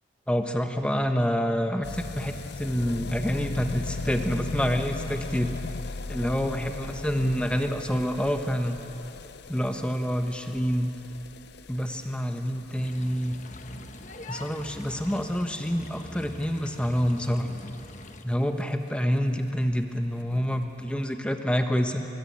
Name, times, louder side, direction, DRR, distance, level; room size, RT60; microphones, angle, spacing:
voice 1, 0.3-5.5 6.1-8.8 9.5-10.9 11.7-13.4 14.3-17.5 18.2-22.0, equal, 5° left, 5 dB, 1.2 m, -27 dB
sound 1, 1.8-18.6 18.9-19.0 19.2-19.3 19.5-19.6 19.8-19.9 20.6-20.7, left 3 dB, 60° left, 0.6 m, -39 dB
sound 2, 12.7-18.2, left 2 dB, 40° left, 1.2 m, -44 dB
23.0 x 22.5 x 8.8 m, 3.0 s
head